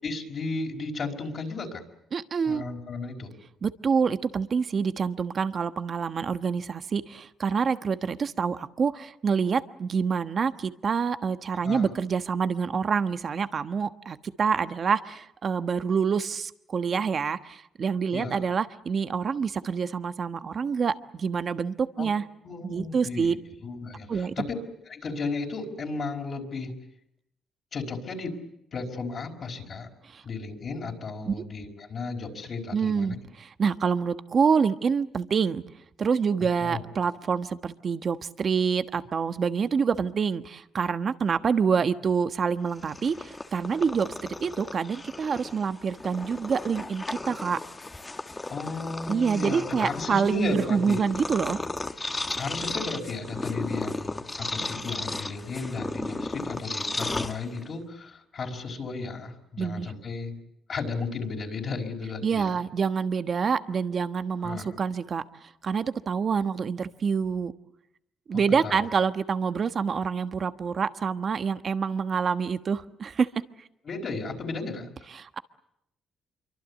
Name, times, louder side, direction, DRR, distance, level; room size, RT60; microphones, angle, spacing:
voice 1, 0.0-1.8 2.4-3.3 11.6-11.9 18.1-18.4 22.0-22.1 22.4-24.5 24.9-26.8 27.7-28.4 28.7-29.9 30.2-33.1 36.6-36.8 48.5-51.0 52.3-60.4 60.7-62.6 64.4-64.8 68.3-68.9 73.8-74.9, left 3 dB, 50° left, 0 dB, 4.8 m, -34 dB
voice 2, 2.1-2.6 3.6-22.2 22.6-23.3 24.1-24.3 30.0-30.2 31.2-31.3 32.7-35.6 36.0-47.6 49.1-51.6 59.6-59.9 62.2-65.2 65.6-67.5 68.3-73.3 75.1-75.4, right 6 dB, 50° right, 10 dB, 1.2 m, -27 dB
Purr, 42.7-57.8, left 2 dB, 20° left, 1.5 m, -35 dB
26.5 x 24.0 x 8.3 m, 0.80 s
cardioid pair, 90°, 0 cm